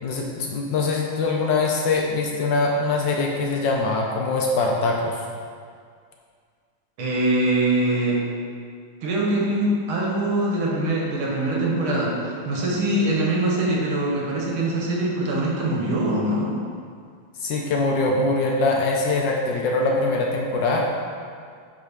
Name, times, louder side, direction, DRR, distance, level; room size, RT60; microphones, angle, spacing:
voice 1, 0.0-5.2 17.4-20.9, left 3 dB, 70° left, 0 dB, 1.2 m, -23 dB
voice 2, 7.0-8.2 9.0-16.5, right 1 dB, 75° right, -3 dB, 2.1 m, -23 dB
8.3 x 3.2 x 5.7 m, 2.1 s
omnidirectional pair, 2.4 m